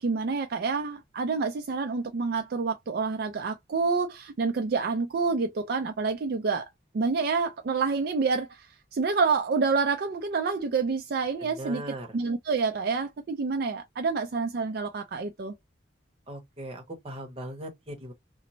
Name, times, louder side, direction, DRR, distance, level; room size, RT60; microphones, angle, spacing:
voice 1, 0.0-6.7 6.9-15.5, right 4 dB, 55° right, 0.4 m, -28 dB
voice 2, 11.6-12.2 16.3-18.1, right 1 dB, 30° right, 0.8 m, -39 dB
3.0 x 2.0 x 2.5 m
head